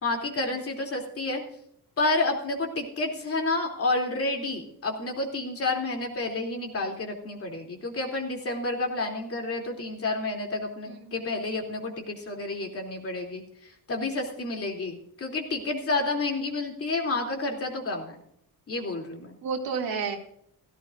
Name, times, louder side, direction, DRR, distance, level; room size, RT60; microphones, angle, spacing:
voice 1, 0.0-1.4 2.0-18.2 18.7-19.3, left 2 dB, 40° left, 1 dB, 3.0 m, -30 dB
voice 2, 10.9-11.4 19.4-20.2, right 5 dB, 70° right, 2 dB, 2.5 m, -32 dB
16.0 x 15.0 x 2.6 m, 0.69 s
cardioid pair, 135°, 37 cm